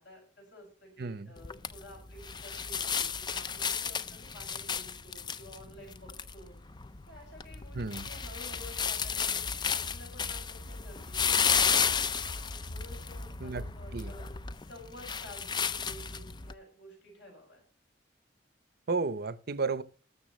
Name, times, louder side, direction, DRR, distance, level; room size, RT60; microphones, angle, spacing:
voice 1, 0.0-6.6 7.1-12.0 12.5-14.3 14.6-17.6, left 1 dB, 70° left, 6.5 m, -52 dB
voice 2, 1.0-1.3 7.7-8.1 13.4-13.7 13.9-14.1 18.9-19.8, right 4 dB, 60° right, 0.7 m, -33 dB
sound 1, 1.4-16.5, left 6 dB, 25° left, 0.5 m, -33 dB
20.0 x 6.9 x 3.1 m
head